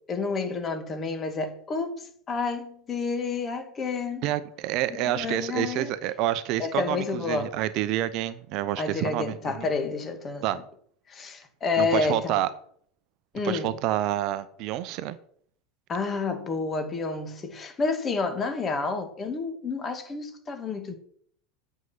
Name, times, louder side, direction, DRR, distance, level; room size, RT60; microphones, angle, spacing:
voice 1, 0.1-4.2 4.9-5.9 6.6-7.5 8.8-10.4 11.1-12.4 13.3-13.7 15.9-21.0, left 4 dB, 25° left, 2.2 m, -29 dB
voice 2, 4.2-9.7 10.4-10.6 11.8-12.5 13.4-15.2, right 13 dB, 50° right, 0.7 m, -28 dB
9.3 x 6.6 x 7.5 m
figure-of-eight pair, 80°, 0 cm